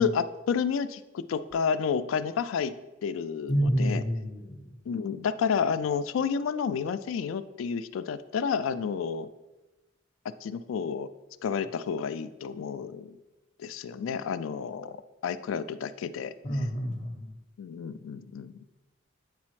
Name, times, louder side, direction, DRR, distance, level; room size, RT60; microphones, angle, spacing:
voice 1, 0.0-2.7 3.0-4.0 4.9-9.3 10.4-11.1 11.4-13.1 13.6-15.0 15.2-16.3 17.6-18.5, left 6 dB, 85° left, 13 dB, 0.3 m, -30 dB
voice 2, 3.5-4.7 16.4-17.3, equal, 35° left, 1 dB, 0.7 m, -28 dB
8.4 x 4.1 x 3.1 m, 1.0 s
head